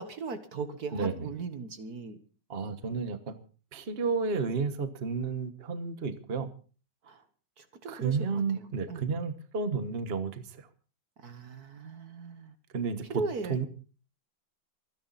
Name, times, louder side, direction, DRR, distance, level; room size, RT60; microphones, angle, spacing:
voice 1, 0.0-2.2 7.0-7.2 7.6-9.1 11.2-12.5 13.2-13.7, right 4 dB, 55° right, 9 dB, 1.7 m, -38 dB
voice 2, 0.9-1.3 2.5-3.4 3.7-6.5 7.9-10.7 12.7-13.1 13.5-13.7, right 5 dB, 35° right, 10 dB, 1.4 m, -32 dB
26.0 x 10.5 x 4.1 m, 0.38 s
omnidirectional pair, 2.1 m